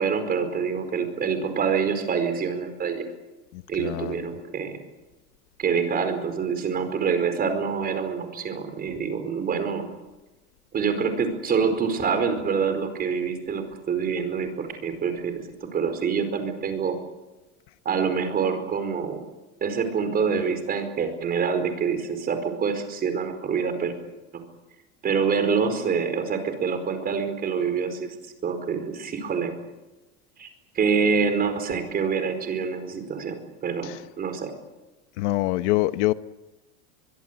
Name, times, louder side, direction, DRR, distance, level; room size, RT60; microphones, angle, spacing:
voice 1, 0.0-3.0 3.7-4.8 5.6-9.9 10.7-15.4 15.7-17.0 17.8-19.2 19.6-23.9 25.0-28.1 28.4-29.5 30.4-30.5 30.7-34.5, right 6 dB, 25° right, 4.7 m, -26 dB
voice 2, 3.5-4.2 33.8-34.0 35.2-36.1, left 18 dB, 70° left, 1.0 m, -25 dB
24.0 x 22.5 x 8.2 m
supercardioid pair, 155°, 36 cm